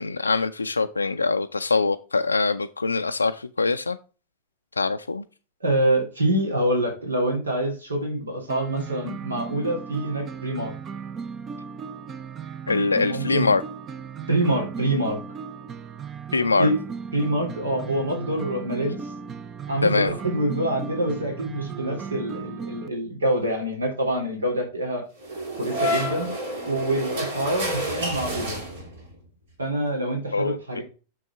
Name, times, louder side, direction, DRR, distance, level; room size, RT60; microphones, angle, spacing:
voice 1, 0.0-4.0 4.8-5.2 12.7-13.6 16.3-16.7 19.8-20.1 30.3-30.6, left 3 dB, 80° left, 0.4 m, -23 dB
voice 2, 5.6-10.7 12.9-13.5 14.3-15.2 16.6-16.8 17.1-19.1 19.7-25.0 25.5-26.3 26.6-28.6 29.6-30.8, right 1 dB, 75° right, 2.8 m, -26 dB
sound 1, 8.5-22.9, right 6 dB, 25° right, 0.6 m, -36 dB
sound 2, 25.2-29.1, equal, 60° right, 3.1 m, -29 dB
6.9 x 6.2 x 3.5 m
figure-of-eight pair, 90°, 0 cm